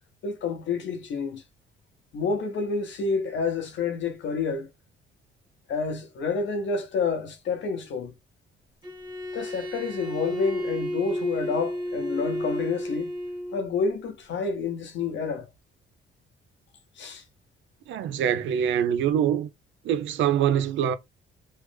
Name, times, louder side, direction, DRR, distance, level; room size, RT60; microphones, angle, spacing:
voice 1, 0.2-1.4 2.1-4.7 5.7-8.1 9.3-13.1 13.5-15.5 17.0-17.2, left 4 dB, 65° left, 0.9 m, -29 dB
Bowed string instrument, 8.8-13.7, equal, 20° right, 1.1 m, -32 dB
voice 2, 17.9-19.5 19.8-21.0, right 9 dB, 75° right, 0.5 m, -24 dB
3.2 x 2.0 x 3.3 m
cardioid pair, 90°, 20 cm